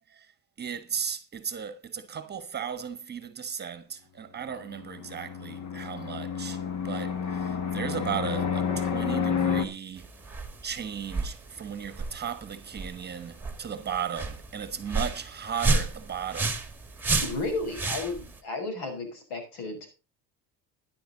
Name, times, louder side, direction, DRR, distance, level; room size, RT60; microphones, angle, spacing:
voice 1, 0.6-10.1 10.6-16.6, right 7 dB, 25° right, 1.3 m, -36 dB
Fixed-wing aircraft airplane, 4.7-9.6, left 7 dB, 45° left, 1.7 m, -30 dB
sound 1, 10.0-18.4, right 3 dB, 5° right, 1.8 m, -32 dB
voice 2, 17.2-19.9, left 2 dB, 70° left, 6.2 m, -33 dB
13.0 x 10.5 x 3.9 m
cardioid pair, 145°, 39 cm